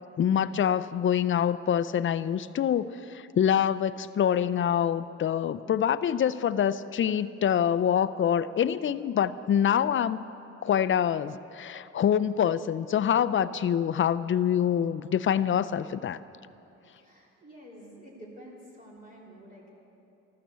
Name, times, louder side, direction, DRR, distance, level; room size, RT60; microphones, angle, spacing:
voice 1, 0.2-10.2 10.6-16.2, left 9 dB, 40° left, 15 dB, 0.5 m, -25 dB
voice 2, 17.0-19.7, equal, 25° right, -4 dB, 3.4 m, -49 dB
14.0 x 12.5 x 6.8 m, 2.9 s
cardioid pair, 90°, 30 cm